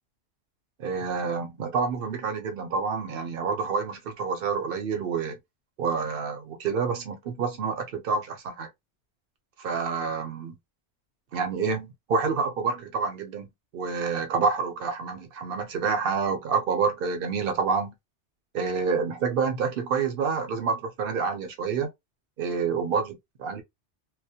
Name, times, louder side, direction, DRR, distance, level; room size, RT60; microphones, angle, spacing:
voice 1, 0.8-5.4 5.8-8.7 9.6-10.6 11.3-13.5 13.7-17.9 18.5-21.9 22.4-23.6, right 5 dB, 60° right, 0.8 m, -28 dB
2.2 x 2.1 x 2.7 m
omnidirectional pair, 1.2 m